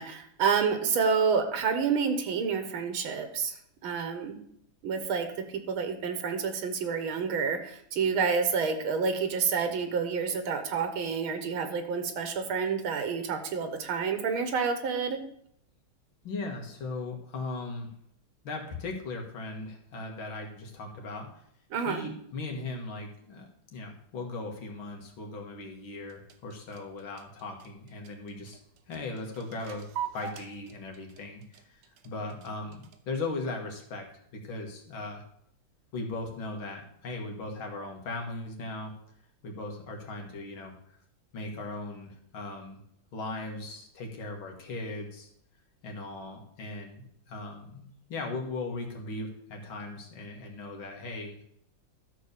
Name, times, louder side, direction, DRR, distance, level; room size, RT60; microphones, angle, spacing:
voice 1, 0.0-4.4 4.8-5.3 5.7-15.2 21.7-22.0, right 5 dB, 80° right, 8 dB, 1.9 m, -29 dB
voice 2, 16.2-17.9 18.4-21.3 21.9-23.5 23.7-28.6 28.9-29.9 30.1-34.1 34.3-35.2 35.9-38.9 39.4-40.7 41.3-42.8 43.1-45.3 45.8-51.4, left 2 dB, 75° left, 2 dB, 2.4 m, -38 dB
sound 1, 25.9-33.2, right 8 dB, 65° right, 1.4 m, -42 dB
12.5 x 4.7 x 6.7 m, 0.70 s
omnidirectional pair, 2.2 m